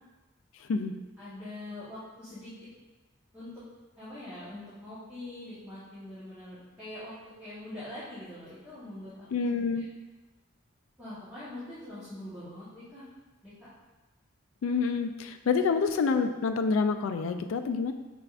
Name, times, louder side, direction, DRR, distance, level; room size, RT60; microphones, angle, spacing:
voice 1, 1.2-2.5 3.3-3.5 4.0-7.1 7.4-9.4 9.7-9.8 11.0-13.1 13.4-13.7, left 1 dB, 10° right, -14 dB, 1.0 m, -43 dB
voice 2, 9.3-9.9 14.6-17.9, left 5 dB, 85° left, 7 dB, 0.3 m, -27 dB
5.9 x 3.4 x 2.4 m, 1.1 s
head